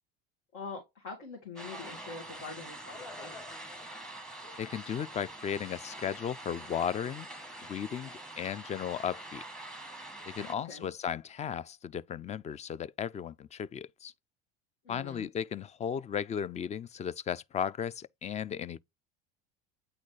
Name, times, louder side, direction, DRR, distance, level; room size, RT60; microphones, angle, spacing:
voice 1, 0.5-3.4 10.4-10.9 14.8-15.3, left 4 dB, 75° left, 2.1 m, -44 dB
sound 1, 1.6-10.5, right 1 dB, ahead, 1.0 m, -45 dB
voice 2, 4.6-7.3 7.6-9.4 10.2-14.1 14.9-18.8, left 8 dB, 25° left, 0.3 m, -35 dB
8.7 x 4.1 x 3.2 m
supercardioid pair, 90°, 29 cm